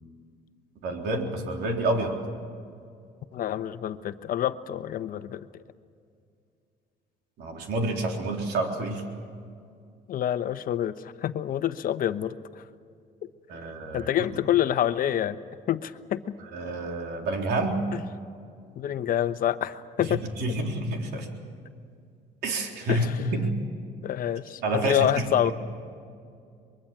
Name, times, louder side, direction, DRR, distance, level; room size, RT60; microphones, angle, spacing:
voice 1, 0.8-2.2 7.4-9.0 13.5-14.1 16.5-17.8 20.4-21.3 22.4-23.5 24.6-25.5, right 2 dB, 75° right, 2 dB, 3.8 m, -28 dB
voice 2, 3.3-5.6 10.1-12.3 13.9-15.4 15.7-16.3 17.9-18.0 18.8-20.3 22.9-23.2 24.0-25.5, left 11 dB, 55° left, 12 dB, 1.0 m, -27 dB
24.0 x 22.0 x 7.4 m, 2.4 s
cardioid pair, 110°, 17 cm